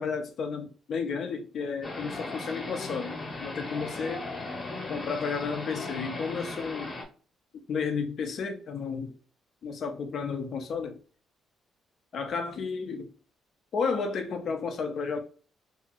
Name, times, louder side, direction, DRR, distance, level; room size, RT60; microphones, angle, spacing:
voice 1, 0.0-4.3 4.9-6.9 7.7-9.2 9.6-11.0 12.1-13.1 13.7-15.2, left 5 dB, 65° left, 0.6 m, -32 dB
sound 1, 1.8-7.0, left 2 dB, 40° left, 1.0 m, -37 dB
2.8 x 2.5 x 2.9 m
supercardioid pair, 65°, 0 cm